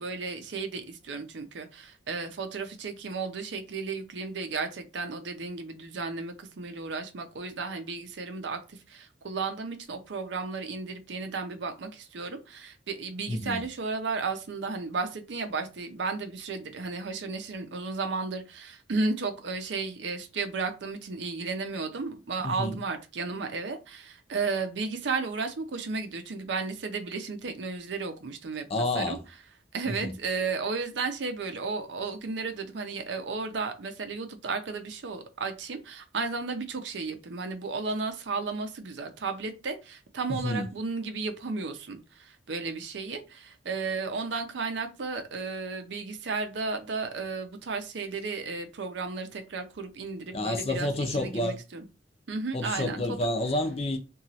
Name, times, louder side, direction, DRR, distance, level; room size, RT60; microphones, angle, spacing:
voice 1, 0.0-28.7 28.9-29.2 29.7-51.8 52.3-53.2, right 4 dB, 70° right, 0.5 m, -34 dB
voice 2, 13.3-13.6 22.4-22.8 28.7-29.2 29.8-30.2 40.3-40.7 50.3-51.6 52.5-54.0, left 1 dB, 35° left, 0.5 m, -29 dB
2.9 x 2.3 x 2.7 m
head